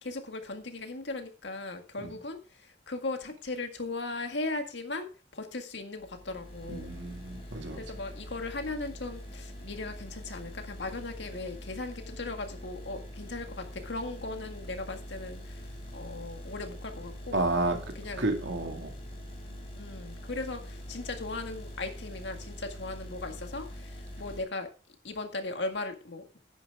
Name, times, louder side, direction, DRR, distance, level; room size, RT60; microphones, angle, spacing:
voice 1, 0.0-6.9 7.7-17.4 18.0-18.2 19.7-24.7 25.0-26.2, left 2 dB, 70° left, 5 dB, 1.8 m, -38 dB
sound 1, 6.0-24.4, equal, 30° left, 4.7 m, -44 dB
voice 2, 6.7-7.9 17.3-17.8 18.2-18.9, right 2 dB, 75° right, 4 dB, 2.3 m, -30 dB
10.5 x 9.8 x 3.6 m, 0.34 s
head